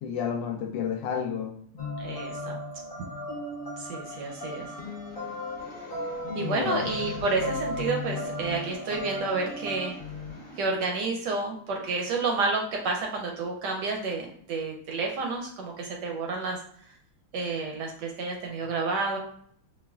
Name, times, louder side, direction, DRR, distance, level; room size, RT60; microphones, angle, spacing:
voice 1, 0.0-1.6 6.3-6.8, left 7 dB, 75° left, 3 dB, 1.2 m, -31 dB
sound 1, 1.8-9.9, left 1 dB, 50° left, 0.6 m, -35 dB
voice 2, 2.0-2.5 3.8-4.7 6.4-9.9 10.6-16.6 17.3-19.2, right 3 dB, 75° right, 1 dB, 1.0 m, -30 dB
sound 2, 4.1-10.6, left 3 dB, 5° left, 0.7 m, -43 dB
5.4 x 2.3 x 2.3 m, 0.63 s
omnidirectional pair, 2.2 m